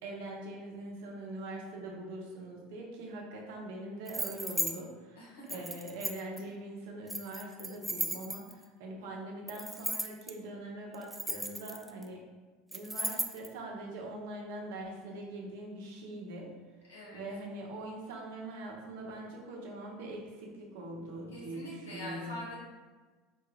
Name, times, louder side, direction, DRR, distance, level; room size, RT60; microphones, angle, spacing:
voice 1, 0.0-12.2 12.7-16.5 17.1-22.4, right 1 dB, 75° right, -1 dB, 0.8 m, -42 dB
sound 1, 4.1-4.7 5.5-6.4 7.1-8.6 9.5-10.3 10.9-12.0 12.7-13.5, equal, ahead, 0.4 m, -35 dB
voice 2, 5.2-5.6 16.8-17.2 21.3-22.6, left 1 dB, 90° left, -5 dB, 1.2 m, -44 dB
4.4 x 2.3 x 3.2 m, 1.3 s
hypercardioid pair, 80°, 0 cm